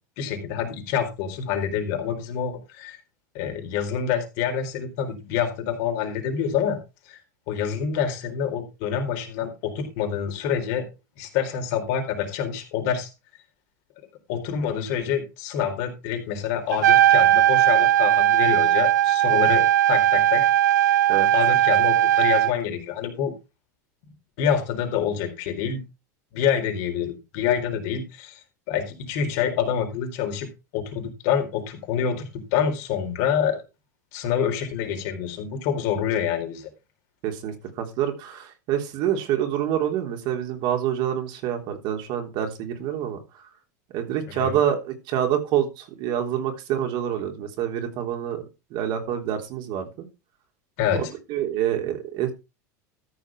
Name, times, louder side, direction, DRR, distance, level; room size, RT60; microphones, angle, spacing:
voice 1, 0.2-3.0 3.3-6.8 7.0-7.2 7.5-10.9 11.2-13.1 14.3-20.5 20.9-21.0 21.3-23.3 24.4-25.8 26.3-28.4 28.7-30.5 30.7-32.2 32.5-33.6 34.1-36.7 44.3-44.6 50.8-51.1, left 8 dB, 65° left, 4 dB, 4.2 m, -27 dB
Trumpet, 16.7-22.5, right 13 dB, 85° right, 0.6 m, -18 dB
voice 2, 37.2-43.2 43.9-48.4 48.7-50.1 50.9-51.0 51.3-52.3, right 10 dB, 55° right, 4 dB, 3.4 m, -27 dB
13.5 x 6.8 x 4.8 m, 0.28 s
hypercardioid pair, 95°, 9 cm